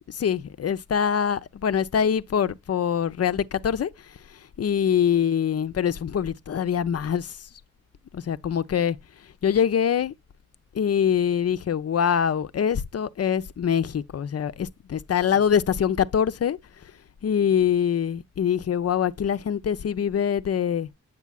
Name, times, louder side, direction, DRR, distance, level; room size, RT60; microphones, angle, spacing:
voice 1, 0.1-3.9 4.6-7.4 8.1-9.0 9.4-10.1 10.7-16.6 17.2-20.9, left 8 dB, 40° left, 0.7 m, -24 dB
8.1 x 6.7 x 2.3 m
hypercardioid pair, 40°, 38 cm